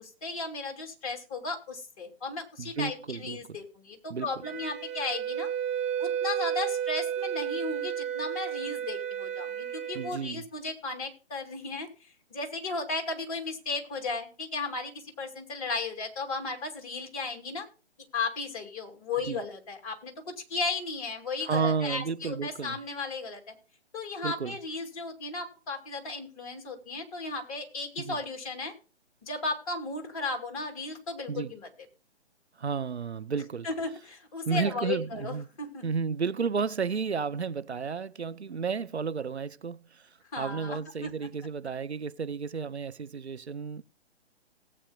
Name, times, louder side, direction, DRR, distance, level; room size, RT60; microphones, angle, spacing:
voice 1, 0.0-5.5 6.0-11.9 12.3-17.7 18.1-23.5 23.9-28.7 29.2-31.7 33.6-35.8 40.3-41.1, left 3 dB, 35° left, 2.6 m, -35 dB
voice 2, 2.6-3.4 4.1-4.3 9.9-10.4 19.3-19.4 21.4-22.8 24.2-24.6 28.0-28.2 31.3-31.5 32.6-33.7 34.5-35.5 35.8-40.0 40.4-43.8, right 5 dB, 75° right, 0.8 m, -32 dB
Wind instrument woodwind instrument, 4.4-10.1, right 9 dB, 15° right, 1.6 m, -32 dB
18.5 x 8.6 x 2.3 m
figure-of-eight pair, 135°, 33 cm